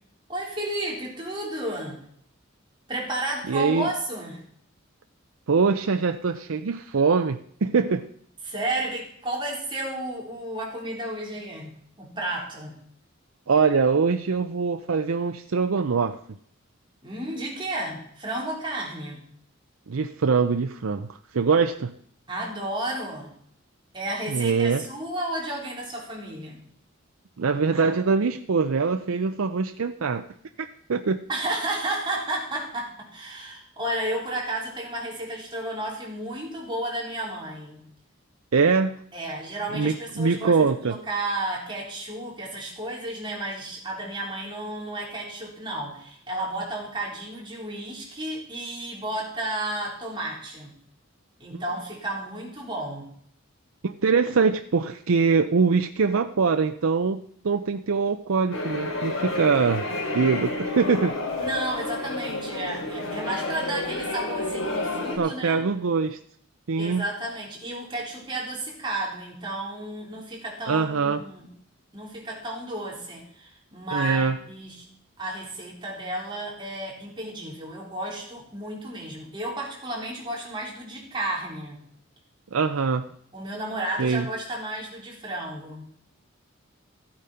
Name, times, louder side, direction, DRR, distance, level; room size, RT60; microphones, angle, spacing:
voice 1, 0.3-2.0 2.9-4.4 8.4-12.7 17.0-19.3 22.3-23.3 23.9-26.6 31.3-37.8 39.1-50.7 51.4-53.1 61.4-65.6 66.8-71.5 71.9-74.9 75.2-81.8 83.3-85.9, right 1 dB, 25° right, -3 dB, 4.1 m, -32 dB
voice 2, 3.5-3.9 5.5-8.1 13.5-16.2 19.9-21.9 24.3-24.9 27.4-30.2 30.6-31.2 38.5-39.0 39.7-41.0 51.5-51.6 53.8-59.8 60.1-61.1 65.2-66.2 66.7-67.0 70.7-71.2 73.9-74.4 82.5-83.1 84.0-84.3, right 5 dB, 90° right, 8 dB, 0.6 m, -23 dB
sound 1, 58.5-65.2, left 2 dB, 80° left, 3.4 m, -30 dB
15.0 x 8.7 x 5.7 m, 0.65 s
head